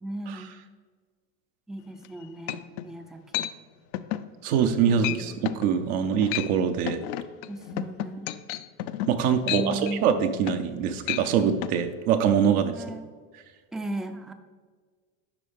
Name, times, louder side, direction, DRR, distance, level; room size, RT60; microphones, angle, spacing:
voice 1, 0.0-0.6 1.7-3.5 4.9-5.5 7.5-8.3 9.4-10.1 12.7-13.1 13.7-14.3, right 1 dB, ahead, 6 dB, 0.4 m, -36 dB
sound 1, 2.0-2.1 2.5-2.9 3.3-3.5 3.9-4.3 4.6-4.8 5.0-5.2 5.4-5.7 6.1-6.5 6.9-10.7 11.0-11.3 11.6-11.7, left 14 dB, 65° left, 0.5 m, -32 dB
voice 2, 4.4-7.0 9.1-12.7, right 7 dB, 75° right, 6 dB, 0.8 m, -24 dB
11.0 x 3.8 x 3.5 m, 1.5 s
supercardioid pair, 95°, 45 cm